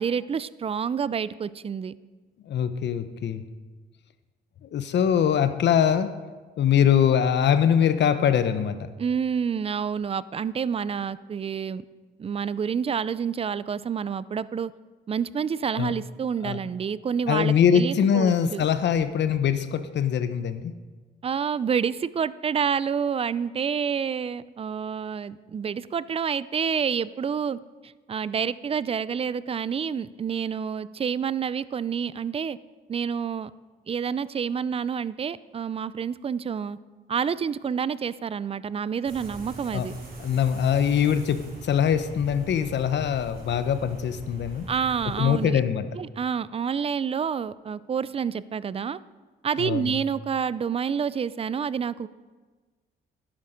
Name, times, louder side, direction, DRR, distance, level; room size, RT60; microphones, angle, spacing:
voice 1, 0.0-1.9 9.0-11.8 12.2-14.7 15.1-18.6 21.2-32.6 32.9-33.5 33.9-36.8 37.1-39.9 44.7-45.6 45.9-49.0 49.4-52.1, right 7 dB, 30° right, 18 dB, 0.4 m, -28 dB
voice 2, 2.5-3.4 4.6-6.1 6.6-8.8 15.8-15.9 16.4-16.6 17.3-20.7 39.7-39.9 40.2-44.7 45.2-45.9 49.6-49.9, left 8 dB, 60° left, 11 dB, 0.9 m, -23 dB
sound 1, 39.0-45.5, right 2 dB, 45° right, 3.1 m, -41 dB
12.0 x 10.5 x 5.1 m, 1.3 s
cardioid pair, 90°, 20 cm